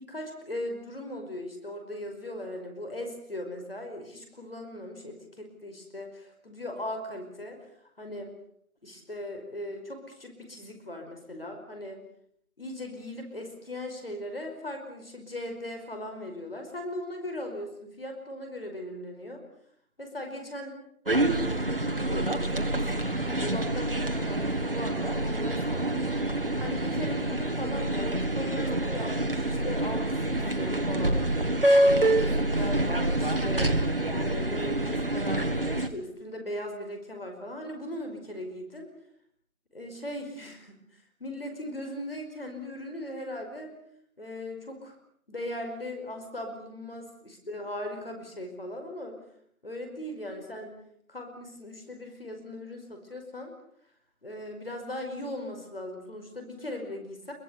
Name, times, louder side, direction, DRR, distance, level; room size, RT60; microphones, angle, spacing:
voice 1, 0.1-7.6 8.0-8.3 8.8-12.0 12.6-19.4 20.0-20.7 21.1-23.0 23.4-26.1 26.6-31.2 31.6-38.9 39.7-40.8 41.2-43.7 44.2-45.0 45.3-49.2 49.6-50.8 51.1-53.5 54.2-57.3, left 1 dB, 40° left, 4 dB, 5.1 m, -38 dB
sound 1, 21.1-35.9, right 1 dB, 40° right, 1.6 m, -27 dB
23.5 x 23.0 x 8.3 m, 0.68 s
figure-of-eight pair, 175°, 44 cm